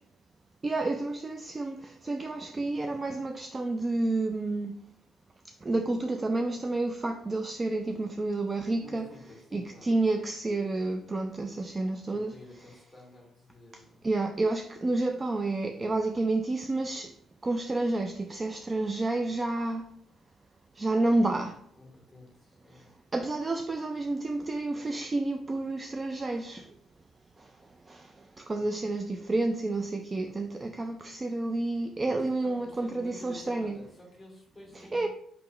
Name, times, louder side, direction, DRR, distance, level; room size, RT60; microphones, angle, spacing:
voice 1, 0.6-4.8 5.6-9.1 9.5-12.3 13.7-17.2 17.4-19.9 20.8-21.6 22.7-22.8 23.1-26.7 27.4-27.5 27.9-33.8 34.8-35.1, right 2 dB, 25° right, 0.3 m, -30 dB
voice 2, 8.8-9.9 12.1-14.0 21.8-22.9 28.5-28.7 32.0-35.1, left 1 dB, ahead, 1.9 m, -51 dB
4.8 x 3.6 x 3.0 m
cardioid pair, 95°, 0 cm